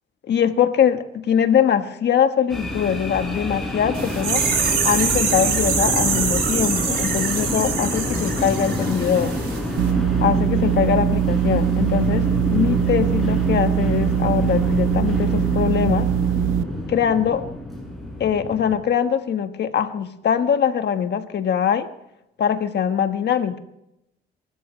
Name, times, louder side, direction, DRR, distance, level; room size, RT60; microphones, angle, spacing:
voice 1, 0.2-4.4 4.8-9.3 10.2-12.3 12.5-16.1 16.9-17.4 18.2-21.9 22.4-23.6, left 8 dB, 60° left, 8 dB, 1.5 m, -22 dB
sound 1, 2.5-18.8, left 1 dB, ahead, 7.4 m, -27 dB
sound 2, 3.9-9.6 9.8-9.9, right 5 dB, 55° right, 4.9 m, -24 dB
sound 3, 9.8-16.6, right 11 dB, 90° right, 0.6 m, -22 dB
28.0 x 13.5 x 3.3 m, 0.83 s
cardioid pair, 90°, 20 cm